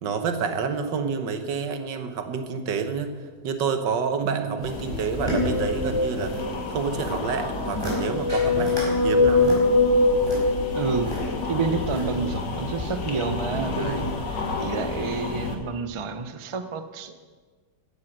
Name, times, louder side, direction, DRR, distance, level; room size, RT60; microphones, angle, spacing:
voice 1, 0.0-3.2 3.4-6.4 6.7-9.6 13.8-14.1, right 5 dB, 85° right, 8 dB, 1.8 m, -28 dB
voice 2, 4.2-4.7 10.7-11.1 11.5-17.2, right 4 dB, 45° right, 9 dB, 0.4 m, -29 dB
sound 1, 4.6-15.6, left 4 dB, 85° left, 2.1 m, -32 dB
sound 2, 4.6-6.4 6.7-7.2 7.6-8.0 8.3-8.9 9.2-11.2 11.8-12.3 12.8-12.9, left 1 dB, 15° right, 4.6 m, -32 dB
sound 3, 5.1-6.7 7.5-11.4, left 2 dB, 65° left, 3.2 m, -23 dB
15.5 x 9.5 x 6.1 m, 1.5 s
omnidirectional pair, 1.9 m